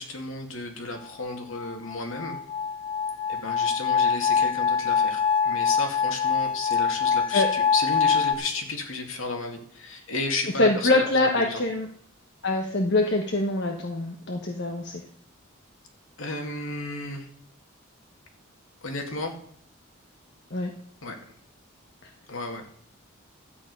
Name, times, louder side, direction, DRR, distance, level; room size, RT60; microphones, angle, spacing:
voice 1, 0.0-2.4 3.3-11.6 16.2-17.3 18.8-19.3 21.0-21.2 22.3-22.7, left 3 dB, 70° left, 3 dB, 2.3 m, -33 dB
sound 1, 1.2-8.3, left 6 dB, 25° left, 0.8 m, -24 dB
voice 2, 10.6-11.9 12.4-14.9 20.5-20.7, left 2 dB, 55° left, 2 dB, 1.2 m, -24 dB
12.5 x 9.0 x 5.4 m, 0.64 s
head